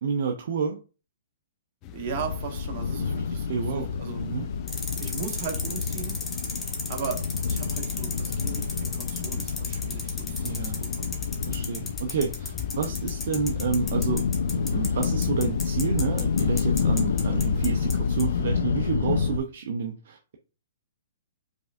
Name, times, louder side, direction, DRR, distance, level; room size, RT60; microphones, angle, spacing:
voice 1, 0.0-0.8 3.5-3.9 4.2-4.5 10.4-10.8 11.5-20.4, right 5 dB, 60° right, 3 dB, 0.6 m, -30 dB
sound 1, 1.8-18.5, left 12 dB, 30° left, 0.3 m, -41 dB
voice 2, 1.9-4.2 5.0-6.2 6.9-7.2 7.5-11.1, right 7 dB, 45° right, 3 dB, 1.2 m, -37 dB
sound 2, 2.1-19.4, left 5 dB, 75° left, 0.6 m, -28 dB
sound 3, 4.7-17.9 18.2-18.3, left 3 dB, 15° left, 1.0 m, -34 dB
5.1 x 3.3 x 2.6 m, 0.35 s
hypercardioid pair, 140°, 0 cm